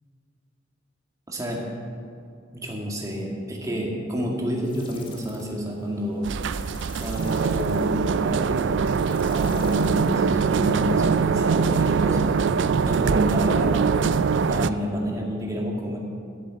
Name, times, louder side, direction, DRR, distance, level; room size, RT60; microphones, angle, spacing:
voice 1, 1.3-1.6 2.5-6.3 7.0-12.4 12.8-14.0 14.5-16.0, equal, 15° right, -1 dB, 1.9 m, -29 dB
sound 1, 4.6-11.0, left 3 dB, 25° left, 1.4 m, -47 dB
sound 2, 6.2-14.7, right 5 dB, 65° right, 0.4 m, -22 dB
11.0 x 7.8 x 7.8 m, 2.5 s
head